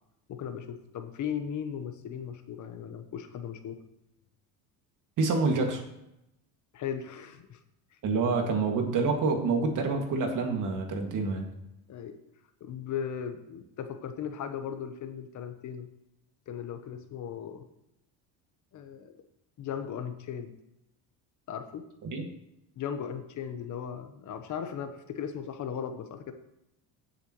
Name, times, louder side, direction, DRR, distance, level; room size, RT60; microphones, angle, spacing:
voice 1, 0.3-3.8 6.7-7.6 7.9-8.0 11.9-12.2 12.6-15.9 16.5-17.6 18.7-19.1 19.6-20.5 21.5-21.9 22.8-26.3, left 8 dB, 50° left, 8 dB, 1.1 m, -37 dB
voice 2, 5.2-5.8 8.0-11.5 22.0-22.3, right 4 dB, 50° right, 3 dB, 2.2 m, -27 dB
16.5 x 7.0 x 3.1 m, 0.85 s
supercardioid pair, 105°, 38 cm